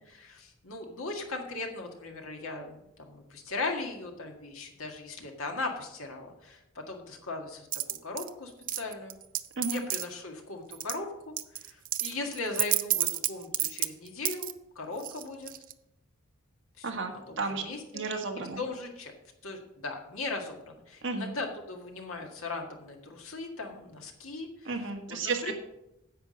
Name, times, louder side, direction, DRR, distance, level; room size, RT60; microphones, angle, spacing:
voice 1, 0.1-7.7 8.0-9.1 9.7-11.3 11.6-14.5 14.8-15.5 16.8-16.9 17.3-18.0 18.6-19.1 19.4-24.5 25.1-25.2 25.4-25.5, left 3 dB, 75° left, 3 dB, 1.8 m, -38 dB
sound 1, 7.7-8.3 8.7-10.1 10.7-11.0 11.4-14.5 15.0-15.7, right 14 dB, 40° right, 0.5 m, -30 dB
voice 2, 16.8-17.6 17.9-18.6 21.0-21.3 24.6-25.5, right 3 dB, 60° right, 3 dB, 1.7 m, -33 dB
10.0 x 8.2 x 5.3 m, 0.87 s
head